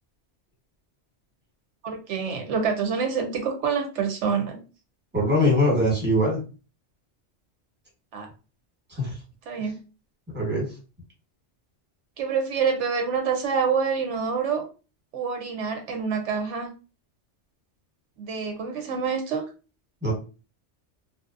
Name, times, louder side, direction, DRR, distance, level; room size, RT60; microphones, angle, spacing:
voice 1, 1.8-4.6 8.1-8.3 9.5-9.8 12.2-14.6 15.1-16.7 18.2-19.4, right 6 dB, 80° right, 5 dB, 0.9 m, -27 dB
voice 2, 5.1-6.4 8.9-9.1 10.3-10.7 20.0-20.1, left 1 dB, 10° right, -3 dB, 1.0 m, -22 dB
2.7 x 2.0 x 2.4 m, 0.33 s
omnidirectional pair, 1.2 m